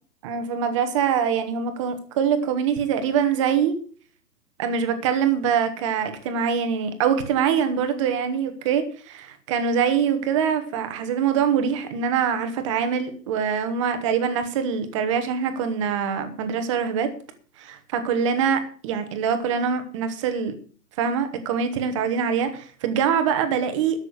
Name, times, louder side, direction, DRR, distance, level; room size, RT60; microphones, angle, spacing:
voice 1, 0.2-3.8 4.6-17.1 17.6-20.5 21.0-24.0, right 7 dB, 20° right, 9 dB, 1.2 m, -24 dB
13.0 x 6.2 x 8.0 m, 0.44 s
hypercardioid pair, 165°, 49 cm